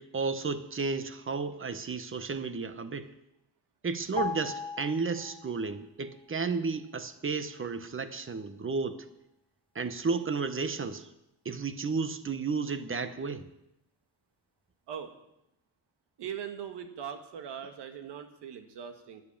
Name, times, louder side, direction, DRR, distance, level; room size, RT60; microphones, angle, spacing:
voice 1, 0.0-3.1 3.8-9.1 9.7-11.1 11.4-13.5, right 4 dB, 30° right, 11 dB, 1.1 m, -33 dB
sound 1, 4.2-5.8 6.1-6.3, left 4 dB, 10° left, 0.8 m, -37 dB
voice 2, 16.2-19.2, right 8 dB, 70° right, 7 dB, 1.8 m, -40 dB
10.5 x 9.7 x 7.2 m, 0.87 s
cardioid pair, 85°, 42 cm